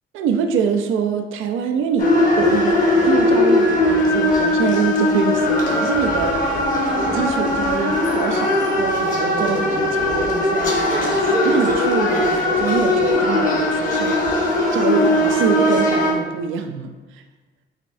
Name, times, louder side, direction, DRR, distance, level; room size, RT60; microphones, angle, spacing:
voice 1, 0.1-6.7 7.1-17.2, right 6 dB, 85° right, 6 dB, 0.5 m, -25 dB
Israel sanctum sepulchrum adhan, 2.0-16.1, left 1 dB, 45° left, 1.0 m, -19 dB
5.0 x 3.1 x 2.6 m, 1.3 s
cardioid pair, 90°, 20 cm